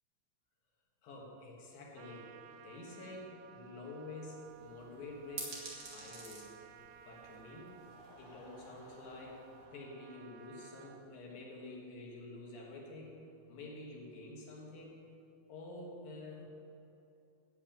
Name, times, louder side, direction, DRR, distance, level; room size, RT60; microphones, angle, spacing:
voice 1, 1.0-6.5 7.0-7.8 8.2-9.4 9.7-13.2 13.5-15.0 15.5-16.4, left 2 dB, 60° left, -3 dB, 3.2 m, -49 dB
Trumpet, 1.9-11.0, right 9 dB, 85° right, 2.3 m, -57 dB
sound 1, 4.4-9.7, right 3 dB, 55° right, 3.2 m, -51 dB
Laughter / Crowd, 7.6-12.0, left 1 dB, 45° left, 3.2 m, -62 dB
13.5 x 4.7 x 8.8 m, 2.8 s
omnidirectional pair, 5.1 m